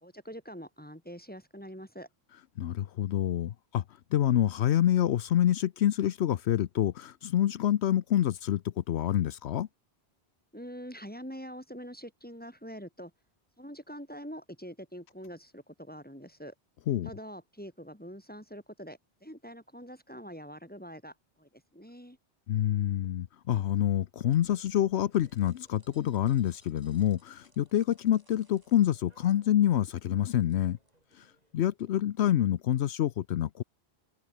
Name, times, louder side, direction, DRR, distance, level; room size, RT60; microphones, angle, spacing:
voice 1, 0.0-2.1 10.5-13.1 13.6-16.5 17.0-22.2, equal, 10° left, 2.0 m, -44 dB
voice 2, 2.6-3.8 4.1-9.7 16.9-17.1 22.5-30.8 31.2-31.3 31.5-33.6, left 11 dB, 80° left, 0.9 m, -27 dB
sound 1, 24.2-32.4, right 1 dB, 40° right, 5.3 m, -68 dB
sound 2, 25.1-31.2, equal, 20° right, 6.5 m, -67 dB
omnidirectional pair, 1.1 m